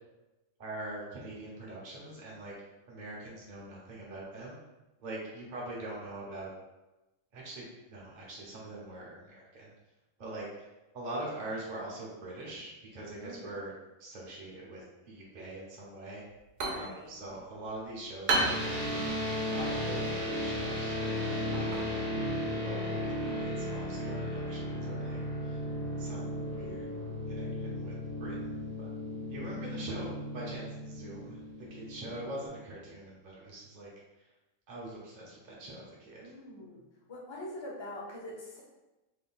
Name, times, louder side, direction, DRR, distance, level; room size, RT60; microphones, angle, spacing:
voice 1, 0.6-2.5 2.9-4.6 5.0-6.5 7.3-9.7 10.2-10.5 10.9-13.7 14.0-16.2 16.7-19.1 19.5-22.0 22.5-25.6 26.0-26.9 27.3-28.9 29.3-31.4 31.7-33.9 34.7-36.2, right 1 dB, 40° right, -5 dB, 0.8 m, -43 dB
voice 2, 13.2-13.6 16.6-17.4 36.2-36.8 37.1-38.6, left 1 dB, 30° left, -3 dB, 0.6 m, -44 dB
sound 1, 16.2-23.7, right 2 dB, 85° right, 1.1 m, -37 dB
sound 2, 18.3-32.5, left 1 dB, 10° left, 1.4 m, -35 dB
3.6 x 3.3 x 2.3 m, 1.0 s
omnidirectional pair, 1.3 m